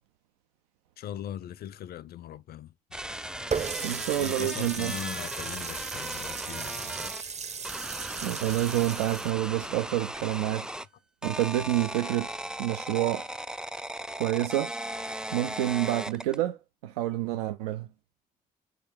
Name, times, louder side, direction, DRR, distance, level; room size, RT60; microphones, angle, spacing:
voice 1, 1.0-2.7 4.2-7.3, left 11 dB, 55° left, 0.5 m, -40 dB
sound 1, 2.9-7.2 7.6-10.9 11.2-16.4, right 1 dB, 5° right, 0.5 m, -37 dB
Water tap faucet, 3.5-9.3, right 6 dB, 35° right, 0.8 m, -36 dB
voice 2, 3.8-4.9 8.2-10.7 11.2-12.3 12.6-13.3 14.2-14.7 15.3-17.9, right 14 dB, 80° right, 0.5 m, -28 dB
6.8 x 4.7 x 4.5 m
figure-of-eight pair, 40°, 19 cm